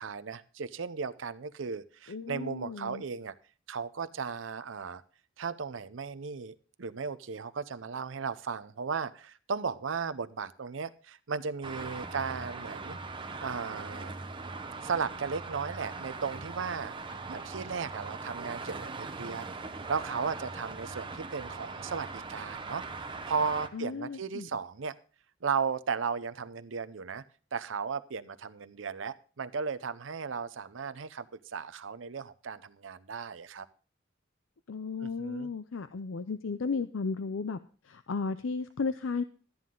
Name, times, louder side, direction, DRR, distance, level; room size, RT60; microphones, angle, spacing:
voice 1, 0.0-3.3 3.7-5.0 5.4-13.0 13.4-14.1 14.8-16.9 17.3-19.6 19.9-24.9 25.4-27.2 27.5-31.3 31.5-33.7 35.0-35.5, right 5 dB, 75° right, 13 dB, 0.6 m, -35 dB
voice 2, 2.1-3.0 23.7-24.5 34.7-37.6 37.8-39.2, left 4 dB, 80° left, 11 dB, 0.5 m, -34 dB
Traffic noise roadway noise, 11.6-23.7, right 3 dB, 25° right, 1.0 m, -41 dB
13.0 x 9.4 x 3.8 m, 0.41 s
head